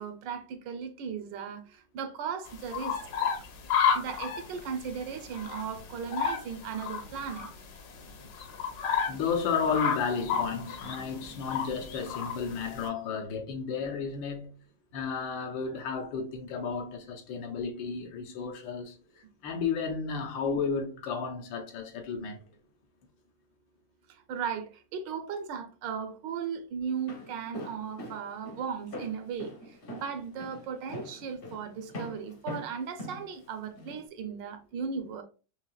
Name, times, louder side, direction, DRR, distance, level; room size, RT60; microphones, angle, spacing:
voice 1, 0.0-3.3 3.9-7.5 24.3-29.5 29.9-35.2, right 6 dB, 80° right, 1.3 m, -36 dB
sound 1, 2.4-12.9, left 6 dB, 65° left, 1.3 m, -32 dB
voice 2, 9.1-14.5 14.9-19.0 19.4-22.4, left 5 dB, 80° left, 1.5 m, -32 dB
Walk footsteps, 26.9-34.0, equal, 45° left, 0.7 m, -42 dB
5.6 x 2.8 x 2.3 m
omnidirectional pair, 2.1 m